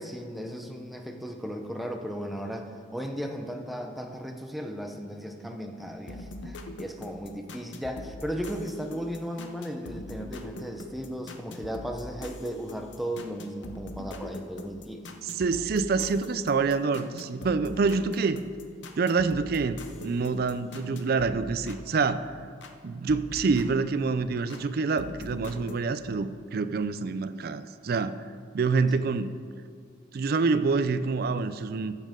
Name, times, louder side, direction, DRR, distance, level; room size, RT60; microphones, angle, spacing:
voice 1, 0.0-15.1, equal, ahead, 3 dB, 0.6 m, -36 dB
sound 1, 6.1-22.8 23.1-24.6 25.0-25.8, left 2 dB, 70° left, 0.7 m, -43 dB
voice 2, 15.2-18.4 19.0-22.3 22.8-28.3 28.5-29.3 30.1-31.9, right 4 dB, 50° right, 12 dB, 0.4 m, -27 dB
14.5 x 7.3 x 3.7 m, 2.1 s
head